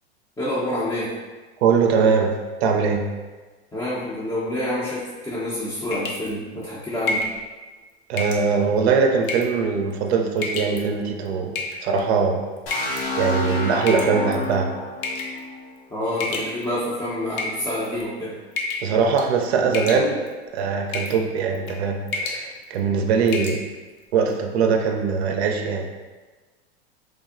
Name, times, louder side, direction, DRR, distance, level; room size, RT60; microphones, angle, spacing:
voice 1, 0.4-1.1 3.7-7.2 15.9-18.4, left 1 dB, 10° left, -9 dB, 0.4 m, -27 dB
voice 2, 1.6-2.3 2.6-3.0 8.1-12.4 13.2-14.7 18.8-20.2 20.5-23.7 24.1-25.9, right 5 dB, 75° right, 3 dB, 0.5 m, -21 dB
sound 1, 5.9-6.3 7.1-7.4 8.2-8.5 9.2-9.6 10.4-10.8 11.6-12.0 12.7-13.0 13.9-14.4 15.0-15.4 16.2-16.9 17.3-18.0 18.6-18.9 19.2-19.4 19.7-20.3 20.9-21.2 21.5-21.8 22.1-22.4 22.8-22.9 23.3-23.6, left 3 dB, 60° left, 0.6 m, -29 dB
sound 2, 12.7-16.5, left 2 dB, 85° left, 0.8 m, -29 dB
3.4 x 2.0 x 2.4 m, 1.3 s
hypercardioid pair, 100°, 32 cm